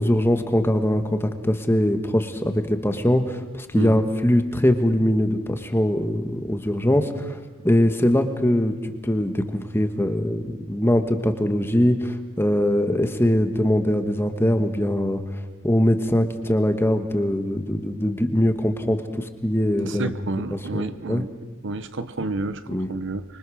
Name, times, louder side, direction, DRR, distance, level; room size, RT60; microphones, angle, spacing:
voice 1, 0.0-8.7 9.0-20.1 20.5-21.3 22.7-22.9, left 1 dB, 10° left, 7 dB, 1.4 m, -22 dB
voice 2, 3.7-4.1 19.8-21.3 21.6-22.6 22.9-23.2, right 2 dB, 60° right, 12 dB, 0.9 m, -30 dB
25.5 x 24.5 x 6.4 m, 1.3 s
head